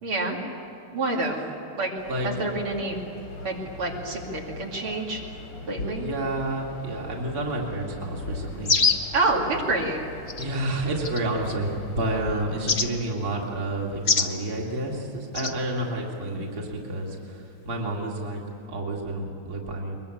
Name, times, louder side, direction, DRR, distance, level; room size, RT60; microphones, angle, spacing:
voice 1, 0.0-0.4 0.9-1.4 1.8-1.9 2.2-3.0 3.4-5.2 5.7-6.0 9.1-10.1, right 2 dB, 75° right, -1 dB, 3.6 m, -27 dB
sound 1, 2.0-12.4, left 2 dB, 85° left, 4.1 m, -40 dB
voice 2, 5.9-8.8 10.4-18.4 18.7-20.0, right 1 dB, 45° right, -1 dB, 2.9 m, -30 dB
sound 2, 8.6-9.1 10.3-10.5 11.0-11.5 12.7-12.9 14.1-14.3 15.3-15.5, left 5 dB, 35° left, 1.0 m, -23 dB
22.5 x 22.0 x 8.6 m, 3.0 s
omnidirectional pair, 2.3 m